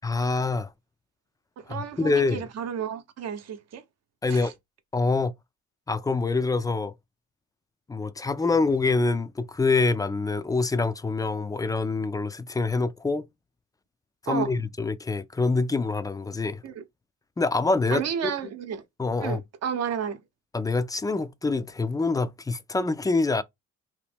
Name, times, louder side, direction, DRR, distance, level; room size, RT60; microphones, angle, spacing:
voice 1, 0.0-0.7 1.7-2.5 4.2-4.5 4.9-5.3 5.9-6.9 7.9-13.3 14.3-16.6 17.4-18.0 19.0-19.4 20.5-23.4, left 3 dB, 15° left, 0.3 m, -25 dB
voice 2, 1.6-3.8 4.3-4.5 14.3-14.5 16.6-16.8 17.9-18.8 19.2-20.2, right 8 dB, 55° right, 0.7 m, -32 dB
2.9 x 2.1 x 3.3 m
cardioid pair, 90°, 30 cm